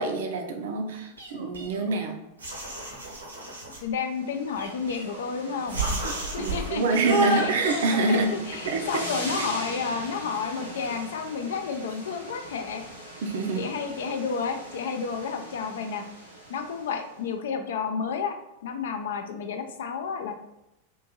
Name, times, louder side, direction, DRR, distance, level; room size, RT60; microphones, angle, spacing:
voice 1, 0.0-2.2 6.0-8.3 8.7-8.8 9.4-9.5 13.2-13.7, right 3 dB, 55° right, 4 dB, 0.5 m, -26 dB
sound 1, 1.2-2.0 2.4-3.8 4.6-5.3 5.7-6.7 7.0-8.0, right 2 dB, 80° right, 0.8 m, -30 dB
voice 2, 3.8-5.8 6.3-7.0 7.3-7.8 8.1-12.8 13.6-16.0 16.5-18.4 18.6-20.3, left 5 dB, 60° left, 6 dB, 0.4 m, -31 dB
sound 2, 3.9-17.2, equal, 85° left, 0.8 m, -41 dB
3.6 x 2.5 x 2.8 m, 0.91 s
figure-of-eight pair, 90°, 0 cm